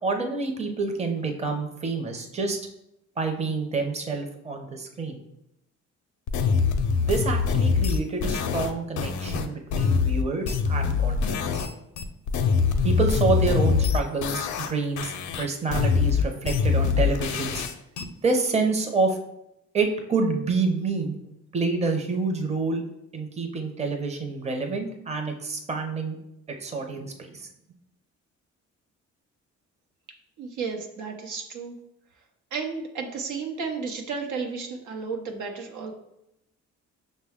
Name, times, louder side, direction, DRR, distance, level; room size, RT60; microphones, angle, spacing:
voice 1, 0.0-2.6 3.2-5.2 7.0-11.6 12.8-17.6 18.2-19.2 19.7-21.2 21.5-22.8 23.1-26.2 26.6-27.5, right 3 dB, 20° right, 3 dB, 0.7 m, -28 dB
sound 1, 6.3-11.7 12.0-14.7 15.0-18.0, left 5 dB, 75° left, 0.5 m, -24 dB
voice 2, 30.4-31.8 32.5-35.9, right 5 dB, 80° right, 3 dB, 0.7 m, -33 dB
5.5 x 2.2 x 3.5 m, 0.82 s
cardioid pair, 90°, 30 cm